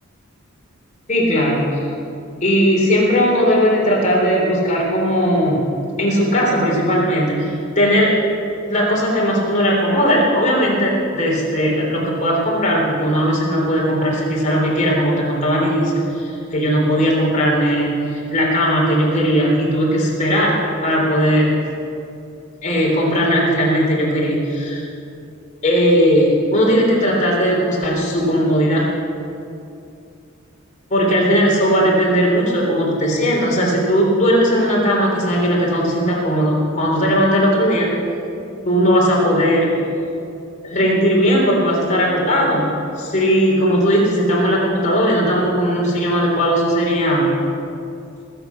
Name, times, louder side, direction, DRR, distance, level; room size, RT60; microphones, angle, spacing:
voice 1, 1.1-1.6 2.4-5.6 6.0-8.1 8.7-21.5 22.6-24.8 25.6-28.9 30.9-37.9 38.6-39.7 40.6-42.7 43.0-47.3, equal, 35° left, -3 dB, 3.6 m, -17 dB
19.5 x 8.4 x 5.8 m, 2.6 s
head